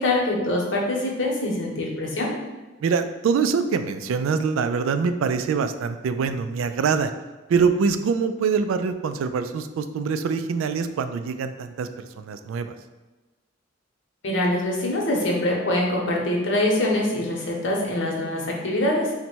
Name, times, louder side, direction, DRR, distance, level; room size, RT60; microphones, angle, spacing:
voice 1, 0.0-2.3 14.2-19.1, left 1 dB, 65° left, -2 dB, 0.9 m, -24 dB
voice 2, 2.8-7.1 7.5-11.9 12.2-12.7, right 5 dB, 85° right, 10 dB, 0.3 m, -24 dB
4.0 x 2.2 x 4.4 m, 1.2 s
head